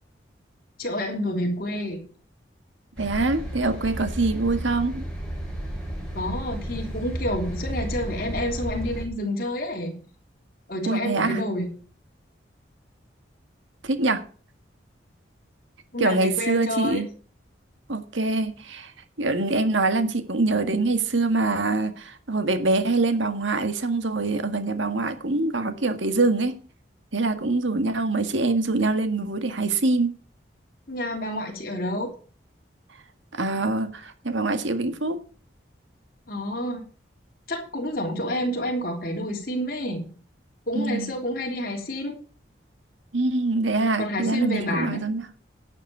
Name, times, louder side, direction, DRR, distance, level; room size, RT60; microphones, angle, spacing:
voice 1, 0.8-2.0 6.1-10.0 10.7-11.7 15.9-17.0 30.9-32.1 36.3-36.8 37.5-40.1 40.7-42.1 44.0-45.0, left 1 dB, 50° left, 3.3 m, -29 dB
sound 1, 3.0-9.0, right 1 dB, 5° left, 4.8 m, -33 dB
voice 2, 3.0-5.0 10.8-11.4 13.8-14.2 16.0-17.1 17.9-18.9 19.2-26.6 27.1-30.2 33.3-35.2 40.8-41.1 43.1-45.3, right 3 dB, 90° right, 1.8 m, -24 dB
11.5 x 7.3 x 6.8 m
head